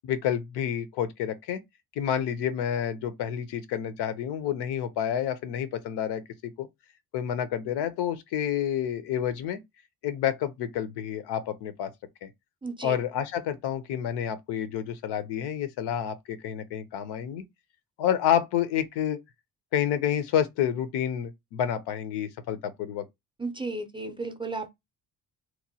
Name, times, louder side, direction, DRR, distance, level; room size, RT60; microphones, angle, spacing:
voice 1, 0.0-1.6 2.0-6.7 7.1-9.6 10.0-11.9 12.2-12.3 12.8-17.4 18.0-19.2 19.7-23.0, left 9 dB, 90° left, 0.6 m, -29 dB
voice 2, 12.6-13.0 23.4-24.7, right 3 dB, 15° right, 0.4 m, -34 dB
2.9 x 2.1 x 2.7 m
cardioid pair, 95°, 39 cm